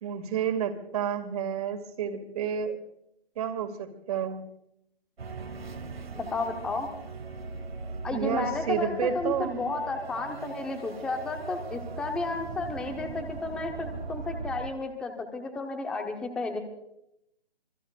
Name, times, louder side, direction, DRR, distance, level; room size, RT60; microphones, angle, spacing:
voice 1, 0.0-2.8 3.4-4.4 8.1-9.8, right 8 dB, 35° right, 7 dB, 2.2 m, -30 dB
sound 1, 5.2-14.7, right 4 dB, 70° right, 2.0 m, -40 dB
voice 2, 6.1-6.9 8.0-16.6, left 3 dB, 5° left, 5 dB, 0.8 m, -32 dB
27.0 x 21.5 x 2.4 m, 0.78 s
figure-of-eight pair, 150°, 31 cm